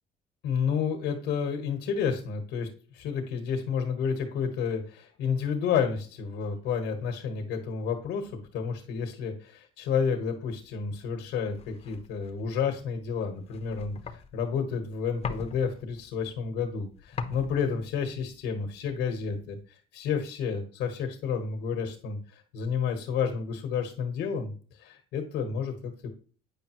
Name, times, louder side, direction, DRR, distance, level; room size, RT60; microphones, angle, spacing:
voice 1, 0.4-24.5 24.8-26.1, left 6 dB, 80° left, 4 dB, 1.3 m, -30 dB
sound 1, 10.7-19.6, left 5 dB, 40° left, 0.8 m, -42 dB
8.8 x 5.2 x 3.0 m, 0.40 s
cardioid pair, 110°, 17 cm